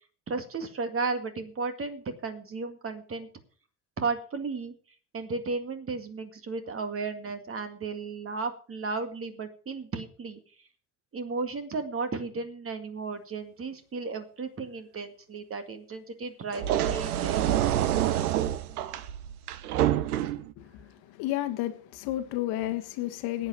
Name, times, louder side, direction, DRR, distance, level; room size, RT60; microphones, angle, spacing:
voice 1, 0.3-3.3 4.0-4.7 5.1-10.4 11.1-17.8, right 4 dB, 30° right, 8 dB, 2.2 m, -34 dB
sound 1, 16.5-20.5, right 12 dB, 70° right, 1.0 m, -27 dB
voice 2, 20.6-23.5, left 15 dB, 55° left, 9 dB, 1.6 m, -32 dB
10.5 x 9.1 x 6.8 m, 0.42 s
figure-of-eight pair, 65°, 46 cm